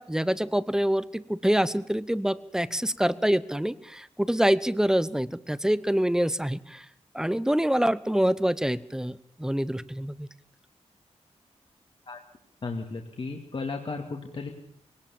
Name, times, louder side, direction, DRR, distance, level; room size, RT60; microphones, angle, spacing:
voice 1, 0.0-6.8 7.1-10.3, equal, 5° right, 17 dB, 0.8 m, -26 dB
voice 2, 12.6-14.5, left 3 dB, 50° left, 2 dB, 2.3 m, -34 dB
21.5 x 18.0 x 7.1 m, 0.67 s
wide cardioid pair, 110°, 12 cm